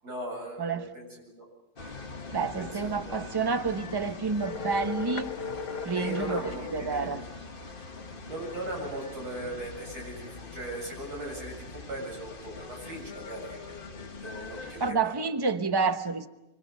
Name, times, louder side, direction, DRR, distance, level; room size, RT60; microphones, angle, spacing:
voice 1, 0.0-1.5 2.6-3.2 5.9-7.1 8.3-13.9 14.2-15.3, right 1 dB, 70° right, -1 dB, 8.5 m, -39 dB
sound 1, 1.8-14.9, left 3 dB, 35° left, 1.5 m, -43 dB
voice 2, 2.3-5.3 5.8-7.2 14.8-16.3, right 4 dB, 20° right, 9 dB, 0.8 m, -29 dB
sound 2, 4.4-6.5, left 6 dB, 85° left, 1.8 m, -36 dB
26.0 x 24.5 x 6.8 m, 0.95 s
omnidirectional pair, 1.7 m